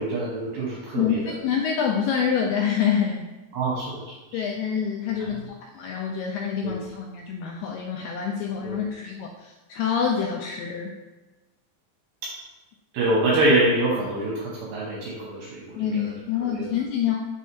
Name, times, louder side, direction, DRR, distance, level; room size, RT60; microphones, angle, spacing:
voice 1, 0.0-1.3 3.5-4.5 5.2-5.3 6.6-6.7 8.6-8.8 12.2-12.3 12.9-16.0 16.4-16.8, right 1 dB, 75° right, -5 dB, 2.1 m, -25 dB
voice 2, 0.9-3.2 4.3-10.9 15.8-17.2, left 7 dB, 85° left, 1 dB, 2.3 m, -26 dB
6.3 x 3.4 x 4.4 m, 1.1 s
omnidirectional pair, 5.0 m